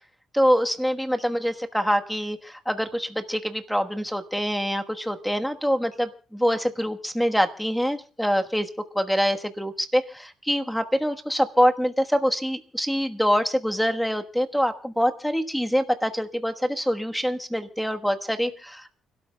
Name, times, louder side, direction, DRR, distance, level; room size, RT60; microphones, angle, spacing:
voice 1, 0.3-8.7 8.9-18.9, equal, ahead, 6 dB, 1.3 m, -25 dB
30.0 x 13.0 x 2.3 m, 0.37 s
cardioid pair, 90°, 0 cm